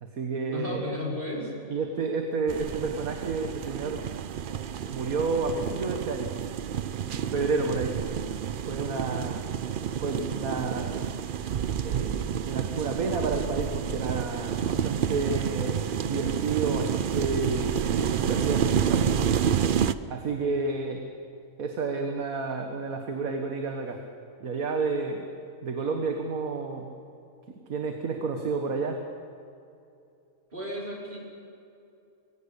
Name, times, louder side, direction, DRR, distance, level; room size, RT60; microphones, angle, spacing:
voice 1, 0.0-0.9 1.7-4.0 4.9-6.3 6.8-8.0 8.7-9.4 10.0-11.0 11.8-15.8 16.1-19.2 20.1-21.0 21.6-24.0 24.4-25.3 25.6-26.9 27.5-29.0, right 4 dB, 85° right, 4 dB, 1.9 m, -30 dB
voice 2, 0.5-1.5 30.5-31.2, left 1 dB, 35° right, -4 dB, 5.2 m, -33 dB
sound 1, 2.5-19.9, right 8 dB, 55° right, 0.6 m, -29 dB
22.5 x 17.0 x 8.4 m, 2.6 s
omnidirectional pair, 1.4 m